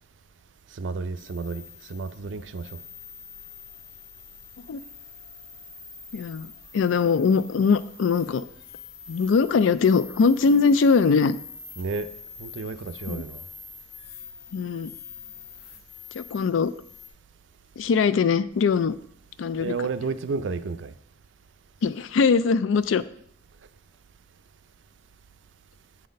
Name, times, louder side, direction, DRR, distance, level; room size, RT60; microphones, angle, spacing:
voice 1, 0.8-1.6 1.9-2.7 11.8-12.1 12.4-13.4 19.6-20.9, right 4 dB, 70° right, 0.4 m, -31 dB
sound 1, 1.2-17.1, left 4 dB, 55° left, 0.8 m, -45 dB
voice 2, 6.1-8.4 9.1-11.4 13.1-13.2 14.5-14.9 16.1-16.7 17.8-18.9 19.4-19.7 21.8-23.0, left 5 dB, 90° left, 0.4 m, -21 dB
7.6 x 4.1 x 5.1 m
head